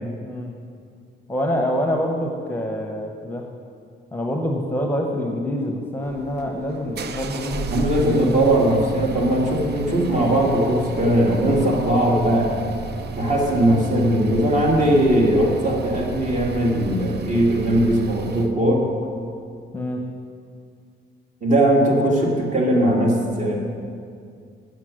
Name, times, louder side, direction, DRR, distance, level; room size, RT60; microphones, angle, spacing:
voice 1, 1.3-3.5 4.1-8.4 19.7-20.0, left 1 dB, 10° left, 1 dB, 0.9 m, -26 dB
sound 1, 6.0-18.5, right 5 dB, 55° right, 0.6 m, -34 dB
voice 2, 7.7-12.5 13.1-18.8 21.4-23.6, right 1 dB, 40° right, -2 dB, 2.3 m, -19 dB
8.1 x 7.4 x 6.4 m, 2.3 s
cardioid pair, 90°, 20 cm